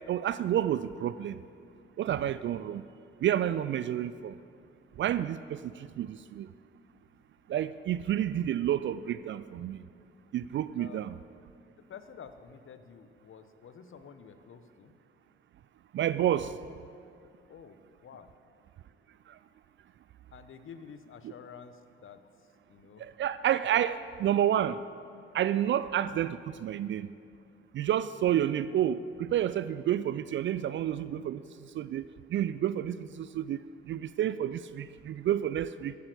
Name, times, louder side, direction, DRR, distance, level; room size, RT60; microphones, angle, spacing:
voice 1, 0.1-1.4 2.0-2.8 3.2-4.4 5.0-6.5 7.5-9.8 10.3-11.1 15.9-16.6 19.3-19.4 23.0-24.8 25.3-27.1 27.7-33.6 33.8-35.9, right 11 dB, 40° right, 15 dB, 0.4 m, -30 dB
voice 2, 11.9-14.9 17.5-18.3 20.3-23.1, left 7 dB, 40° left, 10 dB, 1.0 m, -50 dB
13.5 x 8.4 x 7.8 m, 2.4 s
figure-of-eight pair, 45°, 31 cm